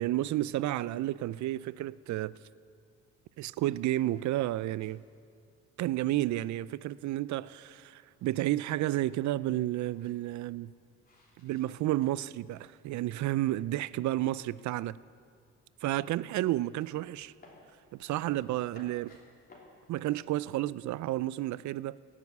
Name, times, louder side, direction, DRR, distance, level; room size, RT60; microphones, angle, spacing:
voice 1, 0.0-2.4 3.4-5.0 5.8-10.7 11.4-15.0 15.8-17.3 17.9-19.1 19.9-22.0, right 15 dB, 70° right, 0.4 m, -31 dB
sound 1, 4.0-12.7 13.0-13.9 14.2-20.3, left 2 dB, 30° left, 3.3 m, -61 dB
17.5 x 7.5 x 8.3 m
cardioid pair, 90°, 30 cm